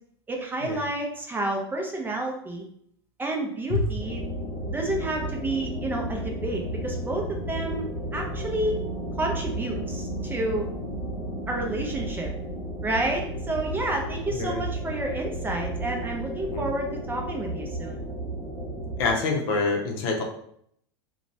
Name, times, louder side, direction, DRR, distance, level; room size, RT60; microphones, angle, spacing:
voice 1, 0.3-2.6 3.2-4.2 4.7-7.8 8.1-8.7 9.2-10.7 11.5-12.3 12.8-18.0, right 2 dB, 15° right, 1 dB, 0.5 m, -30 dB
sound 1, 4.0-19.2, right 1 dB, 30° left, 1.0 m, -33 dB
voice 2, 14.3-14.6 16.5-16.7 19.0-20.2, left 4 dB, 55° left, 2 dB, 0.7 m, -26 dB
2.9 x 2.2 x 2.7 m, 0.67 s
hypercardioid pair, 90°, 14 cm